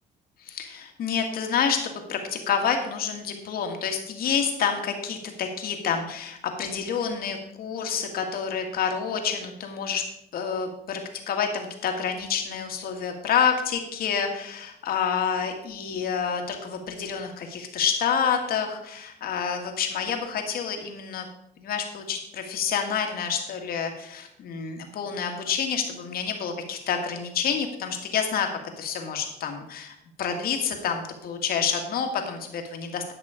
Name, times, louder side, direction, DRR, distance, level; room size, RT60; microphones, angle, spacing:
voice 1, 0.4-10.0 10.3-11.0 11.3-21.3 21.6-28.5 28.8-33.1, left 7 dB, 60° left, 4 dB, 1.8 m, -28 dB
11.5 x 6.1 x 5.0 m, 0.79 s
cardioid pair, 110°, 17 cm